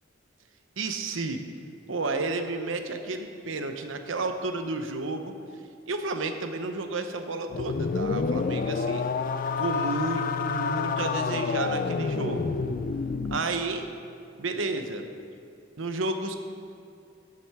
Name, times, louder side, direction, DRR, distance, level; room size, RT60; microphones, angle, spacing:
voice 1, 0.8-1.4 1.9-5.3 5.9-9.0 9.6-12.5 13.3-13.9 14.4-15.0 15.8-16.4, right 3 dB, 80° right, 6 dB, 0.9 m, -31 dB
sound 1, 7.5-13.4, left 5 dB, 45° left, 0.4 m, -28 dB
10.5 x 7.7 x 5.9 m, 2.4 s
head